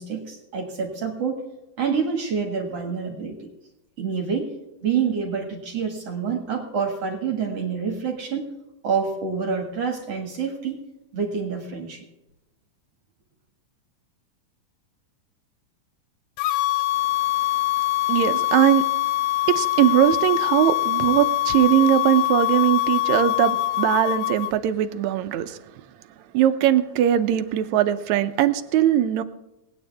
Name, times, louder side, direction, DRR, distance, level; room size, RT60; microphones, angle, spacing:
voice 1, 0.0-1.4 1.8-3.4 4.0-4.5 4.8-8.5 8.8-10.8 11.1-12.0, right 6 dB, 55° right, 1 dB, 2.7 m, -27 dB
sound 1, 16.4-24.5, left 17 dB, 80° left, 1.5 m, -23 dB
voice 2, 18.1-18.8 19.5-25.6 26.3-29.2, right 11 dB, 75° right, 9 dB, 2.0 m, -20 dB
19.5 x 9.9 x 3.5 m, 0.94 s
omnidirectional pair, 3.4 m